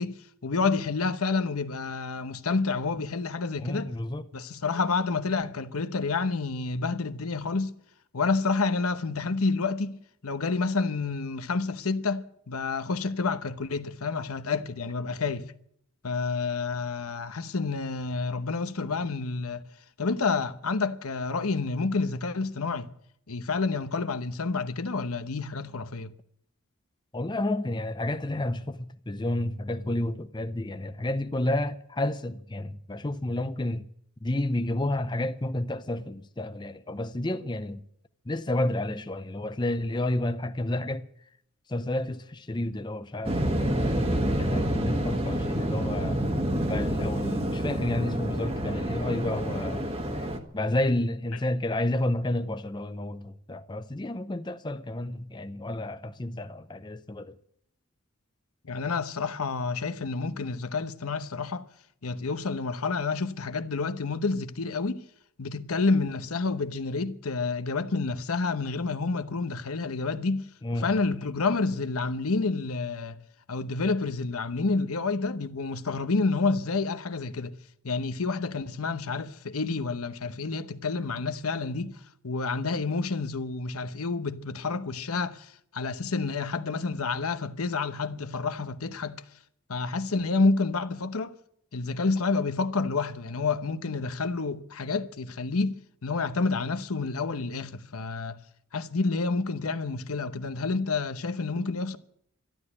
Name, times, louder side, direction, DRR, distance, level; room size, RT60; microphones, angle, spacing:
voice 1, 0.0-3.9 4.3-7.8 8.1-10.0 10.2-15.5 16.0-19.6 20.0-22.9 23.3-26.1 58.6-61.7 62.0-65.0 65.4-73.2 73.5-77.5 77.8-89.2 89.7-91.4 91.7-98.4 98.7-102.0, left 4 dB, 90° left, 0.9 m, -29 dB
voice 2, 3.6-4.3 27.1-33.9 34.2-37.8 38.3-41.1 41.7-44.1 44.4-46.2 46.7-57.4 70.6-70.9, left 1 dB, 20° left, 0.6 m, -30 dB
Waves surf, 43.2-50.4, right 1 dB, 25° right, 1.4 m, -28 dB
12.5 x 12.0 x 9.8 m
head